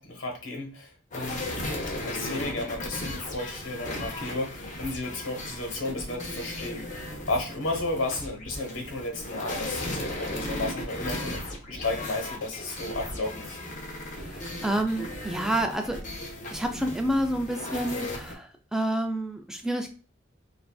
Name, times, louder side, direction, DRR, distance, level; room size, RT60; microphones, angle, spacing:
voice 1, 0.0-1.6 2.0-13.6, left 2 dB, 80° left, 4 dB, 1.2 m, -33 dB
sound 1, 1.1-18.3, left 1 dB, 40° left, 1.0 m, -36 dB
voice 2, 14.1-16.0 16.5-19.9, right 1 dB, 5° right, 4 dB, 0.4 m, -29 dB
6.8 x 2.6 x 2.3 m, 0.40 s
head